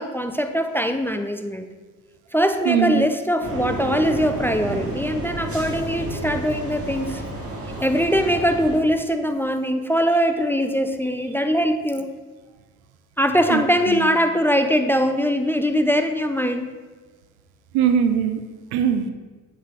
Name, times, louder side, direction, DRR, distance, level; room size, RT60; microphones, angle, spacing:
voice 1, 0.0-1.7 2.3-7.2 7.8-12.1 13.2-16.7, equal, 5° left, 7 dB, 0.4 m, -22 dB
voice 2, 2.7-3.1 13.5-14.2 17.7-18.4 18.7-19.1, right 8 dB, 75° right, 9 dB, 0.6 m, -21 dB
sound 1, 3.4-8.8, right 2 dB, 35° right, 1.9 m, -31 dB
7.7 x 4.0 x 3.3 m, 1.4 s
hypercardioid pair, 55°, 38 cm